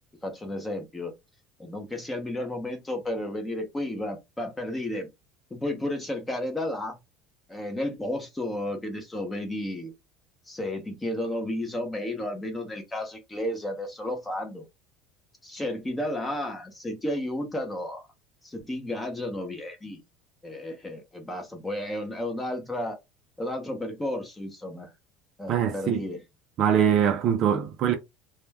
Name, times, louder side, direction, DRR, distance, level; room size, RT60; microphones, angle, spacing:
voice 1, 0.2-1.1 1.6-5.1 5.5-7.0 7.5-9.9 10.5-14.7 15.4-18.1 18.4-20.0 20.4-23.0 23.4-24.9 25.4-26.2, left 1 dB, 10° left, 0.6 m, -32 dB
voice 2, 25.5-26.1 26.6-28.0, right 8 dB, 35° right, 0.4 m, -23 dB
2.2 x 2.1 x 3.2 m
cardioid pair, 175°, 0 cm